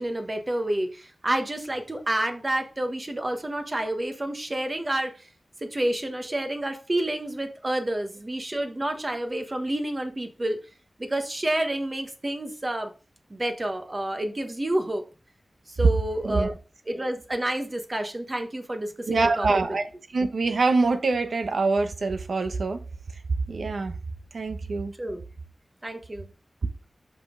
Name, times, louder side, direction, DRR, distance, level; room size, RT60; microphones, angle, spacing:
voice 1, 0.0-5.3 5.6-10.6 11.0-12.9 13.3-15.0 15.7-16.5 16.9-19.5 25.0-25.2 25.8-26.3, right 1 dB, 30° right, 1.2 m, -29 dB
voice 2, 19.1-19.9 20.1-22.8 23.5-23.9 24.3-24.9, right 3 dB, 85° right, 1.0 m, -25 dB
5.6 x 5.2 x 3.8 m
wide cardioid pair, 85°, 0 cm